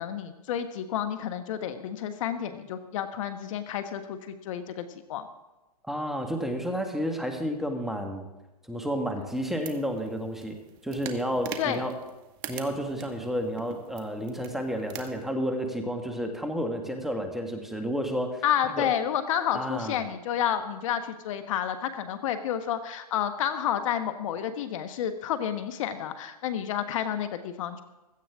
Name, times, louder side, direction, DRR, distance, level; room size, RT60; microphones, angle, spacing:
voice 1, 0.0-5.3 11.6-11.8 18.4-27.8, left 9 dB, 55° left, 9 dB, 1.2 m, -30 dB
voice 2, 5.9-8.3 8.6-10.6 10.8-11.9 12.5-18.9 19.5-20.0, equal, ahead, 4 dB, 1.6 m, -31 dB
sound 1, 9.3-15.2, right 9 dB, 35° right, 1.6 m, -44 dB
16.0 x 14.0 x 3.6 m, 1.0 s
hypercardioid pair, 130°, 20 cm